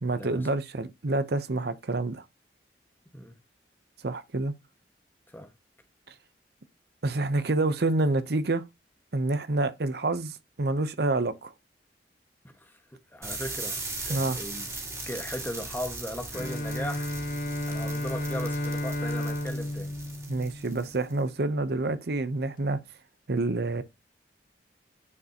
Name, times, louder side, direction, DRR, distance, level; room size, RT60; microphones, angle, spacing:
voice 1, 0.0-2.2 4.0-4.5 7.0-8.6 9.1-11.5 14.1-14.4 20.3-22.8 23.3-23.8, right 2 dB, 65° right, 0.8 m, -28 dB
voice 2, 12.5-14.7 15.1-17.1 17.7-19.9, equal, 10° left, 1.5 m, -38 dB
sound 1, 13.2-21.1, right 3 dB, 15° right, 2.2 m, -39 dB
Bowed string instrument, 16.3-21.2, left 1 dB, 50° left, 0.8 m, -32 dB
9.6 x 4.9 x 2.9 m
head